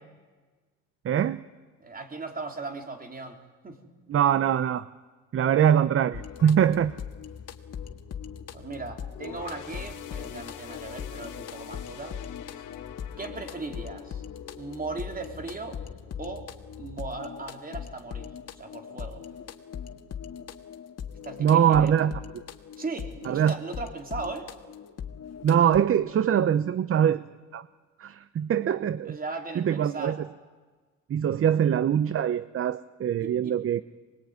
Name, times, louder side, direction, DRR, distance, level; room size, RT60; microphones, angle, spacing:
voice 1, 1.0-1.4 4.1-4.9 5.3-6.9 21.4-22.2 23.3-23.5 25.4-27.2 27.5-27.7 28.0-29.2 29.6-30.2 31.1-33.8, right 9 dB, 45° right, 15 dB, 0.7 m, -23 dB
voice 2, 1.8-3.8 8.5-12.2 12.6-12.7 13.2-14.2 14.6-15.8 16.2-16.5 16.8-19.2 21.2-21.9 22.8-24.5 29.1-30.2 33.2-33.6, right 3 dB, 30° right, 4 dB, 3.4 m, -38 dB
sound 1, 6.1-25.8, left 8 dB, 55° left, 1.8 m, -40 dB
sound 2, 9.1-16.8 17.2-17.4 18.3-18.4, left 10 dB, 85° left, 1.7 m, -45 dB
23.5 x 20.5 x 9.5 m, 1.4 s
cardioid pair, 90°, 30 cm